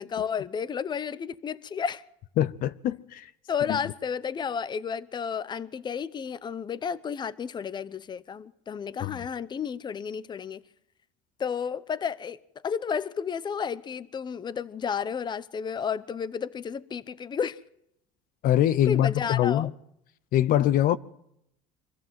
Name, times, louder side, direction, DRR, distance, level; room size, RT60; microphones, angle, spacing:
voice 1, 0.0-2.0 3.5-10.6 11.4-12.4 12.6-17.6 18.9-19.7, left 7 dB, 25° left, 0.8 m, -32 dB
voice 2, 2.4-3.2 9.0-9.1 18.4-19.7 20.3-21.0, left 12 dB, 55° left, 0.8 m, -23 dB
24.5 x 14.5 x 7.6 m
supercardioid pair, 115°, 17 cm